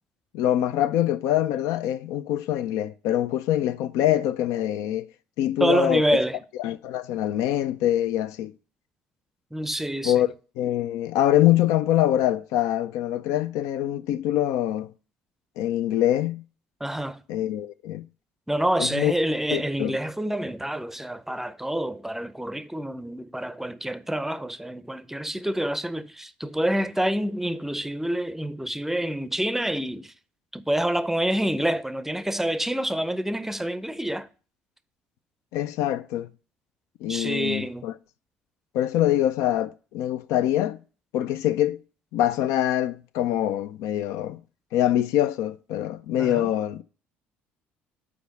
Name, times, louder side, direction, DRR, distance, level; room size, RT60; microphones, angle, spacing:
voice 1, 0.3-5.1 5.4-6.2 6.6-8.5 10.0-10.3 10.6-14.9 15.6-16.4 17.3-18.1 18.8-19.1 19.5-20.0 35.5-36.3 37.0-37.9 38.7-40.8 41.1-41.8 42.1-44.4 44.7-46.8, left 12 dB, 65° left, 0.4 m, -24 dB
voice 2, 5.6-6.4 9.5-10.3 16.8-17.2 18.5-30.1 30.5-34.3 37.1-37.9 46.2-46.5, right 1 dB, 5° right, 0.5 m, -27 dB
5.1 x 4.8 x 6.3 m
hypercardioid pair, 55°, 6 cm